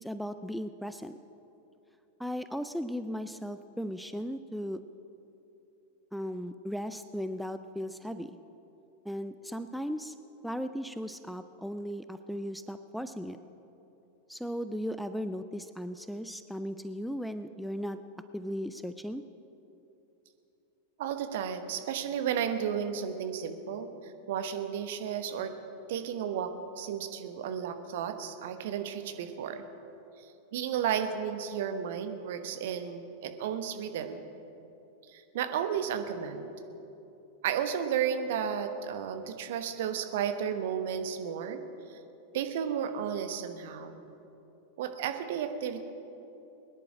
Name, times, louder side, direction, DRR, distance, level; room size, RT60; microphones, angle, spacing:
voice 1, 0.0-1.2 2.2-4.8 6.1-8.4 9.1-10.1 10.4-13.4 14.3-18.0 18.3-19.2, equal, ahead, 11 dB, 0.4 m, -36 dB
voice 2, 21.0-25.5 25.9-29.6 30.5-34.3 35.1-36.5 37.4-41.6 41.9-42.0 42.3-44.0 44.8-45.8, right 8 dB, 55° right, 8 dB, 1.1 m, -33 dB
21.5 x 10.5 x 4.9 m, 2.9 s
figure-of-eight pair, 90°, 0 cm